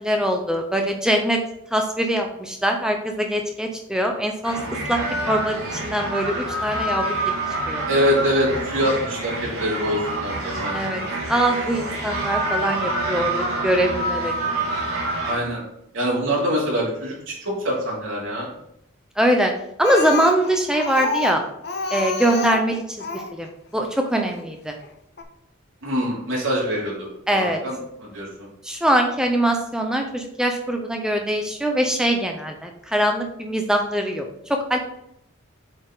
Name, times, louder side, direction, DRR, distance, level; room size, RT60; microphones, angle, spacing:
voice 1, 0.0-1.4 1.7-4.6 4.9-5.0 5.3-7.1 7.7-7.8 10.7-11.0 11.3-13.3 13.6-14.3 19.2-19.5 19.8-21.4 21.9-23.0 23.3-23.5 23.7-24.7 27.3-27.6 28.6-34.8, right 1 dB, 5° right, 3 dB, 0.5 m, -22 dB
sound 1, 4.4-15.3, right 2 dB, 85° right, 1.8 m, -27 dB
voice 2, 7.9-10.8 15.2-15.6 15.9-18.5 25.8-28.5, equal, 70° right, -5 dB, 2.8 m, -24 dB
Speech, 19.8-23.4 24.3-24.4 24.8-24.9 25.2-25.3, left 3 dB, 50° left, 0.7 m, -28 dB
7.8 x 4.2 x 3.9 m, 0.76 s
head